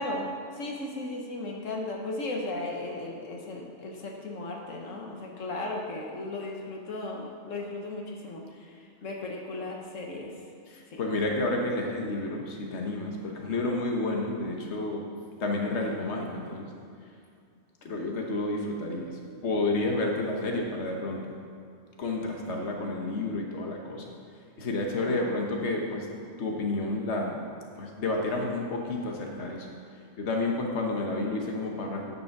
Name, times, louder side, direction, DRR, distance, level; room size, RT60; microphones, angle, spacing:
voice 1, 0.0-8.4 9.0-10.4 10.9-11.0 24.9-25.4, left 2 dB, 80° left, 0 dB, 1.5 m, -36 dB
voice 2, 10.7-15.0 15.4-16.7 17.8-21.2 22.0-24.1 24.6-26.1 26.4-27.4 27.7-29.7 30.2-32.2, left 2 dB, 60° left, 1 dB, 1.4 m, -30 dB
9.8 x 7.0 x 5.9 m, 2.4 s
omnidirectional pair, 1.3 m